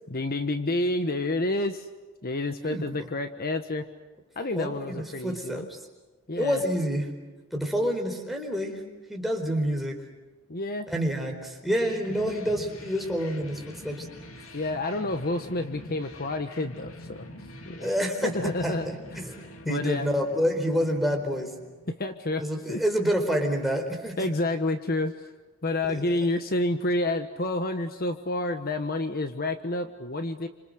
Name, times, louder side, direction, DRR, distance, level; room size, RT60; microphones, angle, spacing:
voice 1, 0.1-1.9 2.2-3.8 4.4-5.7 6.3-6.6 10.5-10.9 14.5-17.3 17.6-17.9 18.2-18.9 19.6-20.1 21.9-22.4 22.7-22.8 24.2-25.1 25.6-30.5, left 2 dB, 50° left, 8 dB, 1.3 m, -29 dB
voice 2, 2.6-3.1 4.6-5.8 6.4-7.1 7.5-10.0 10.9-14.1 17.8-21.6 22.4-24.3 25.8-26.0, equal, ahead, 1 dB, 4.4 m, -28 dB
sound 1, 11.7-22.3, left 1 dB, 80° left, 2.8 m, -45 dB
29.5 x 26.5 x 6.6 m, 1.2 s
head